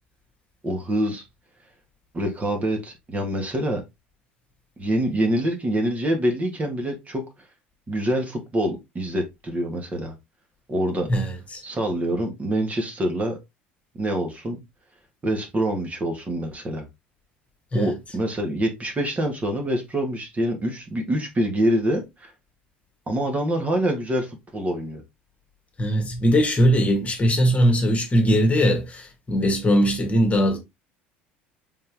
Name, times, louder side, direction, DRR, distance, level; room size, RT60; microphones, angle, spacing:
voice 1, 0.6-1.2 2.1-3.8 4.8-7.2 7.9-10.1 10.7-11.1 11.6-13.4 14.0-14.6 15.2-16.8 17.7-22.3 23.1-25.0, right 1 dB, 25° right, 1.5 m, -25 dB
voice 2, 11.1-11.6 17.7-18.0 25.8-30.6, equal, 25° left, 1.5 m, -20 dB
4.3 x 3.8 x 3.3 m
figure-of-eight pair, 65°, 6 cm